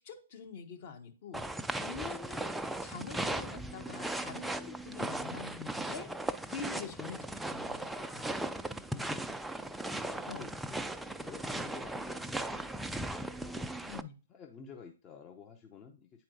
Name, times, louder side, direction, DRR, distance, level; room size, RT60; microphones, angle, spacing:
voice 1, 0.0-2.5 2.8-6.1 6.5-8.3 10.3-10.5 13.8-14.1, left 6 dB, 50° left, 5 dB, 1.3 m, -45 dB
sound 1, 1.3-14.0, right 1 dB, 5° right, 0.3 m, -37 dB
voice 2, 8.8-9.4 10.0-12.8 13.4-13.7 14.3-16.2, left 6 dB, 25° left, 3 dB, 0.7 m, -52 dB
9.1 x 4.3 x 2.6 m, 0.35 s
hypercardioid pair, 125°, 0 cm